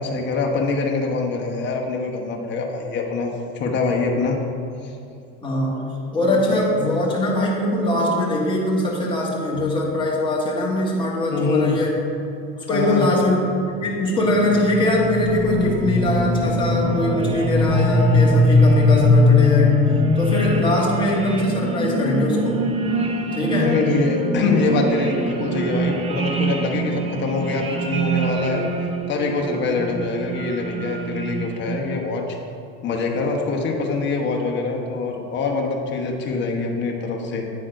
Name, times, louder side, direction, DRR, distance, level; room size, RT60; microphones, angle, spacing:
voice 1, 0.0-4.4 4.8-4.9 6.5-6.7 11.3-11.8 12.7-13.1 23.5-28.7 29.1-32.4 32.8-37.5, left 4 dB, 35° left, 1 dB, 1.1 m, -24 dB
voice 2, 5.4-11.9 12.5-13.4 13.8-19.8 20.1-22.6 23.3-23.7, left 1 dB, 15° left, -4 dB, 1.6 m, -21 dB
sound 1, 13.6-32.0, left 1 dB, 20° right, 0.6 m, -22 dB
8.9 x 4.1 x 5.0 m, 2.5 s
supercardioid pair, 130°, 31 cm